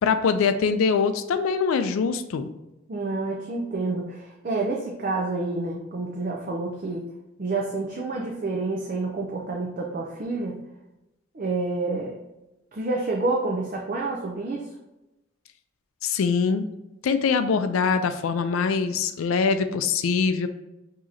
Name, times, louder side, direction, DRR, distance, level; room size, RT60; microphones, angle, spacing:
voice 1, 0.0-2.5 16.0-16.7 17.0-20.5, left 5 dB, 85° left, 10 dB, 0.4 m, -23 dB
voice 2, 2.9-7.1 7.4-10.5 11.3-12.2 12.7-14.7, right 3 dB, 40° right, -2 dB, 0.4 m, -28 dB
4.8 x 2.8 x 2.7 m, 0.94 s
head